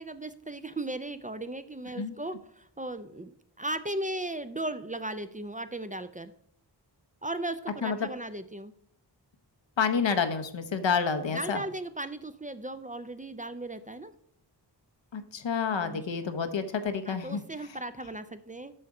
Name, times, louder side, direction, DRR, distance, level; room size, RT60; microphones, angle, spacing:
voice 1, 0.0-3.3 3.6-6.3 7.2-8.7 11.3-14.1 15.8-16.0 17.1-18.7, right 1 dB, 20° right, 12 dB, 0.4 m, -36 dB
voice 2, 9.8-11.6 15.1-17.4, left 6 dB, 85° left, 9 dB, 0.9 m, -29 dB
7.7 x 6.6 x 4.8 m, 0.68 s
wide cardioid pair, 85°, 43 cm